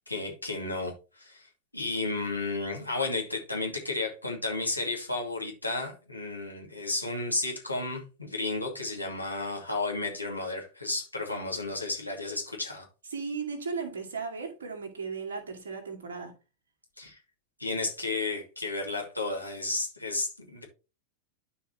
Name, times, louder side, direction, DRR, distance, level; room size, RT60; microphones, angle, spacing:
voice 1, 0.1-1.5 1.7-12.9 17.0-17.2 17.6-20.6, left 3 dB, 85° left, 2.5 m, -33 dB
voice 2, 13.1-16.3, right 5 dB, 65° right, 2.3 m, -36 dB
12.0 x 4.8 x 3.0 m
figure-of-eight pair, 90°, 0 cm